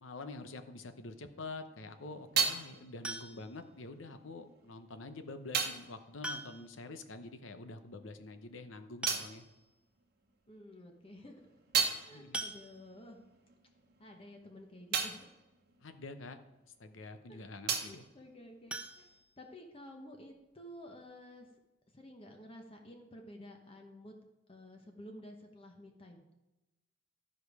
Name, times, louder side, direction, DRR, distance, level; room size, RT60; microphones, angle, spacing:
voice 1, 0.0-9.5 12.1-12.4 15.8-16.4 16.6-18.0, left 3 dB, 80° left, 8 dB, 0.8 m, -47 dB
sound 1, 1.6-7.5 7.8-10.5 10.9-16.9 17.2-19.2, right 6 dB, 50° right, 1.0 m, -39 dB
sound 2, 3.0-3.7 5.2-5.3 6.2-6.8 7.1-7.2 7.5-7.6 8.6-8.7 9.0-9.7 10.3-10.4 10.7-10.9 12.3-13.2 18.7-19.9 20.2-20.3 20.8-20.9 21.2-21.3, right 1 dB, 5° right, 0.5 m, -43 dB
voice 2, 10.5-11.4 11.8-13.3 14.0-15.3 17.3-17.5 17.9-19.1 19.4-21.5 21.9-24.1 24.5-26.2, left 1 dB, 30° left, 3 dB, 0.9 m, -52 dB
12.5 x 5.1 x 4.8 m, 1.0 s
head